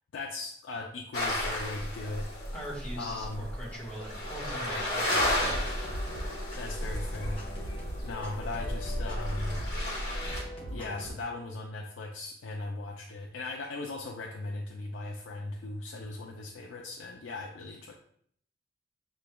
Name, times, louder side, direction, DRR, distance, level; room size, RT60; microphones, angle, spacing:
voice 1, 0.1-2.3 3.0-3.5 6.5-7.4 8.0-9.6 10.7-17.9, left 2 dB, 85° left, 0 dB, 0.5 m, -38 dB
sound 1, 1.1-10.4, left 1 dB, 55° left, 1.2 m, -33 dB
voice 2, 2.5-5.6, equal, 10° left, -7 dB, 1.5 m, -41 dB
sound 2, 4.6-11.1, equal, 30° left, 1.0 m, -40 dB
6.7 x 3.2 x 2.2 m, 0.65 s
head